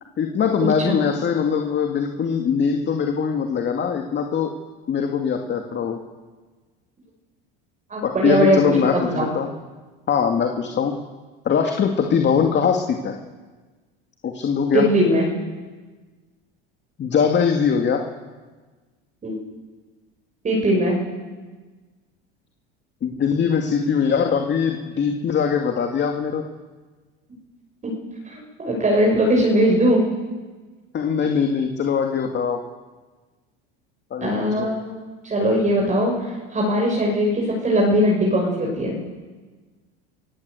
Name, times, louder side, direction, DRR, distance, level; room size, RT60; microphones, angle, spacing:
voice 1, 0.2-4.5 4.9-6.0 8.0-9.5 10.1-11.0 11.4-13.2 14.2-14.9 17.0-18.0 23.0-26.4 30.9-32.6 34.1-34.7, left 6 dB, 40° left, 4 dB, 2.3 m, -22 dB
voice 2, 7.9-9.2 14.7-15.3 19.2-19.4 20.4-21.0 27.8-27.9 28.2-30.0 34.2-39.0, equal, 25° right, -2 dB, 6.4 m, -20 dB
28.5 x 15.5 x 8.1 m, 1.4 s
supercardioid pair, 95°, 29 cm